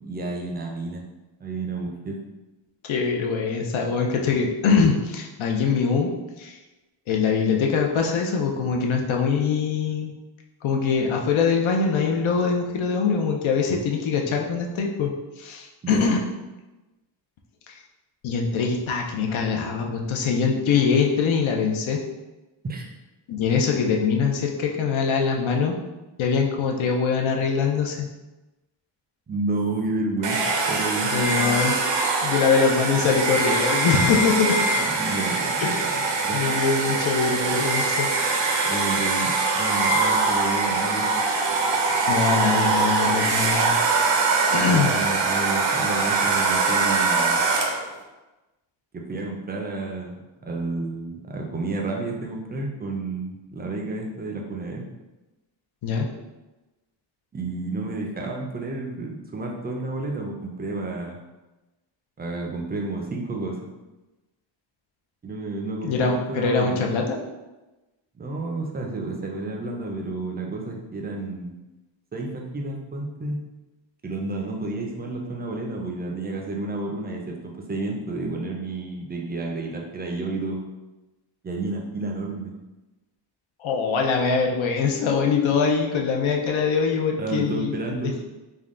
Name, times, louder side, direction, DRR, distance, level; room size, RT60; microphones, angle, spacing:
voice 1, 0.0-1.0 1.4-2.2 15.8-16.1 22.6-22.9 29.3-31.1 34.8-35.6 36.2-36.4 38.6-41.1 44.7-47.4 49.1-54.8 57.3-61.2 62.2-63.6 65.2-66.9 68.2-71.5 72.1-73.4 74.0-80.6 81.4-82.5 87.2-88.2, right 2 dB, 20° right, 1 dB, 0.4 m, -31 dB
voice 2, 2.9-6.1 6.4-6.6 7.1-10.1 10.6-15.1 15.4-16.2 17.7-17.8 18.2-22.0 23.3-25.8 26.2-28.1 31.1-31.7 32.2-34.6 35.6-36.0 36.3-38.1 42.1-43.8 44.5-44.9 55.8-56.1 65.8-67.2 83.6-87.7, left 5 dB, 75° left, 1 dB, 0.6 m, -23 dB
Domestic sounds home sounds, 30.2-47.9, right 3 dB, 65° right, 0.6 m, -23 dB
3.6 x 2.2 x 3.6 m, 1.1 s
wide cardioid pair, 160°, 47 cm